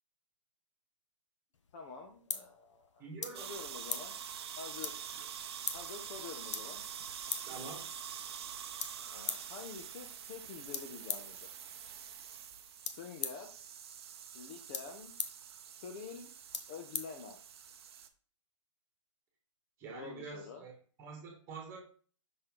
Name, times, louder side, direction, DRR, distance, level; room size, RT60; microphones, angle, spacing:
sound 1, 1.5-17.8, left 6 dB, 65° left, 0.9 m, -45 dB
voice 1, 1.7-3.0 3.4-4.2 4.6-4.9 5.7-6.8 9.0-11.5 13.0-13.5 14.3-15.1 15.8-16.3 16.7-17.4 19.9-20.6, left 5 dB, 25° left, 4 dB, 0.6 m, -47 dB
voice 2, 3.0-3.5 7.4-7.8 19.8-20.7 21.0-21.8, right 4 dB, 15° right, 0 dB, 1.8 m, -46 dB
sound 2, 3.3-18.1, right 8 dB, 50° right, 0.7 m, -46 dB
6.0 x 4.2 x 3.7 m, 0.43 s
hypercardioid pair, 160°, 17 cm